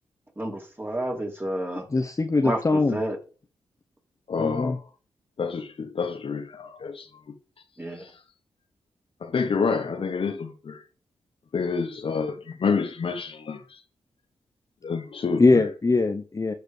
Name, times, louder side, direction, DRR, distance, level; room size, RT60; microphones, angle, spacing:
voice 1, 0.4-1.9 2.4-3.2 7.8-8.0, right 1 dB, 20° right, 3.1 m, -30 dB
voice 2, 1.9-3.0 4.4-4.8 15.4-16.5, left 3 dB, 30° left, 0.8 m, -22 dB
voice 3, 4.3-4.8 5.4-7.1 8.0-8.1 9.2-10.8 11.5-13.8 14.8-15.6, left 5 dB, 55° left, 1.1 m, -28 dB
13.0 x 4.8 x 3.3 m
supercardioid pair, 40°, 11 cm